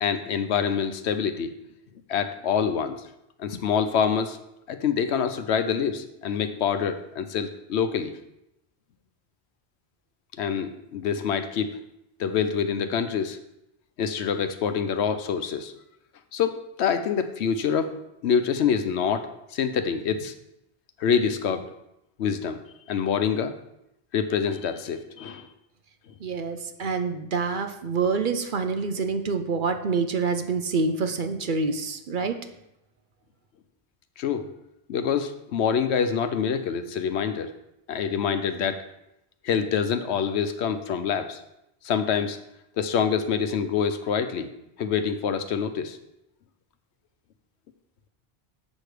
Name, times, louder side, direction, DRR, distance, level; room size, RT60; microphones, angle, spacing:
voice 1, 0.0-1.5 2.1-3.0 3.4-4.4 4.7-8.1 10.4-11.8 12.2-13.4 14.0-15.7 16.3-20.3 21.0-21.7 22.2-22.6 22.9-23.6 24.1-25.5 34.2-34.5 34.9-37.5 37.9-38.8 39.4-41.4 41.8-42.4 42.8-44.5 44.8-46.0, left 7 dB, 80° left, 9 dB, 1.0 m, -26 dB
voice 2, 26.2-32.4, right 4 dB, 55° right, 7 dB, 0.8 m, -27 dB
7.4 x 6.3 x 4.9 m, 0.84 s
omnidirectional pair, 1.1 m